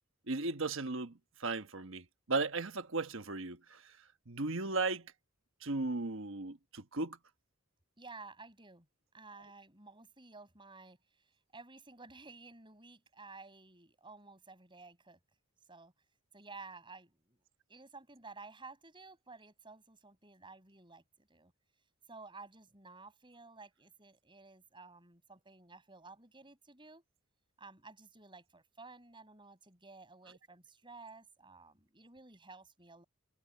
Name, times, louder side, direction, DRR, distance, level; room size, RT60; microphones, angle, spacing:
voice 1, 0.3-1.1 1.4-3.8 4.3-5.1 5.6-7.2, right 3 dB, 60° right, 1.2 m, -36 dB
voice 2, 8.0-8.9 9.1-15.2 15.7-15.9 16.3-17.4 17.7-21.5 22.1-27.0 27.6-33.0, right 3 dB, 20° right, 6.4 m, -54 dB
head